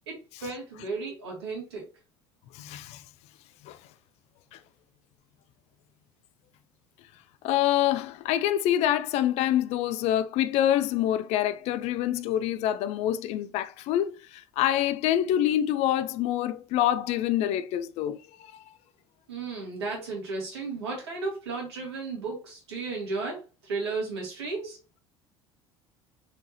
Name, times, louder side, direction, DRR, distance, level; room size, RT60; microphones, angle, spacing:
voice 1, 0.1-1.9 19.3-24.8, right 3 dB, 75° right, 3.3 m, -34 dB
voice 2, 2.5-3.0 3.6-3.8 4.5-4.6 7.4-18.6, left 12 dB, 50° left, 0.6 m, -26 dB
6.9 x 4.6 x 3.1 m
figure-of-eight pair, 60°, 14 cm